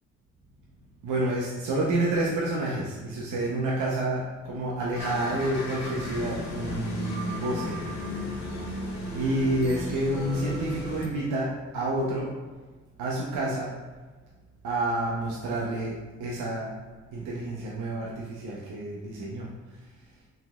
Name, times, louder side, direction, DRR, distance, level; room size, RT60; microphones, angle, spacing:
voice 1, 1.0-8.2 8.5-8.8 9.1-12.3 13.0-13.7 14.6-16.7 17.1-19.5 19.8-19.9, right 1 dB, 85° right, -4 dB, 0.8 m, -29 dB
sound 1, 5.0-11.1, left 1 dB, 65° left, 1.4 m, -34 dB
5.6 x 3.8 x 2.4 m, 1.3 s
cardioid pair, 90°, 30 cm